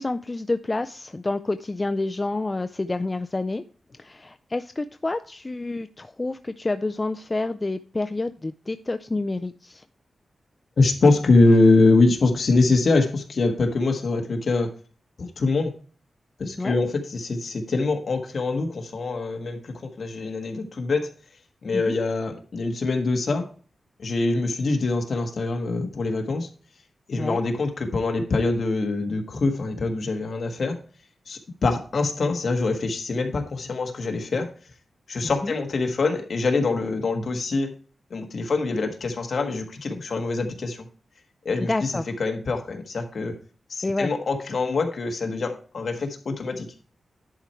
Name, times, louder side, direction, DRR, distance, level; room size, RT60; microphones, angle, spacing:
voice 1, 0.0-3.6 4.0-9.8 16.6-16.8 21.7-22.0 27.2-27.4 35.4-35.5 41.7-42.1 43.8-44.1, left 2 dB, 20° left, 9 dB, 0.3 m, -28 dB
voice 2, 10.8-14.7 15.2-15.7 16.4-21.1 21.6-23.4 24.0-26.5 27.1-30.8 31.3-34.5 35.1-37.7 38.1-40.8 41.4-41.9 42.2-43.3 43.7-46.7, left 3 dB, 55° left, 4 dB, 1.5 m, -24 dB
11.0 x 4.4 x 4.4 m, 0.40 s
wide cardioid pair, 140°, 0 cm